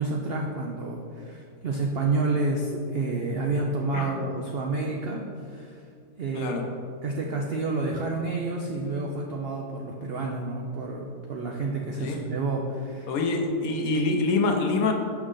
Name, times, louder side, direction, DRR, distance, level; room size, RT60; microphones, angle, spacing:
voice 1, 0.0-5.8 6.2-6.6 7.0-13.1 13.3-13.5, right 3 dB, 90° right, 0 dB, 0.5 m, -29 dB
voice 2, 13.1-14.9, left 3 dB, 65° left, 4 dB, 1.0 m, -25 dB
6.3 x 6.2 x 3.8 m, 2.3 s
omnidirectional pair, 1.8 m